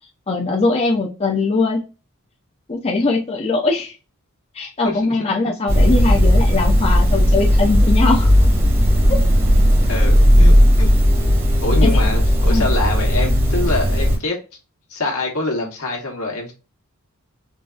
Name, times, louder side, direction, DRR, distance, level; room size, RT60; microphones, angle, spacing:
voice 1, 0.3-1.8 2.7-3.9 4.5-8.3 9.1-9.2 11.8-11.9 12.5-12.7, left 3 dB, 25° left, 0.5 m, -20 dB
sound 1, 5.7-14.2, equal, 40° right, 1.1 m, -15 dB
voice 2, 9.7-10.9 11.6-14.4 14.9-16.5, left 2 dB, 75° left, 1.1 m, -25 dB
3.9 x 2.3 x 2.3 m
head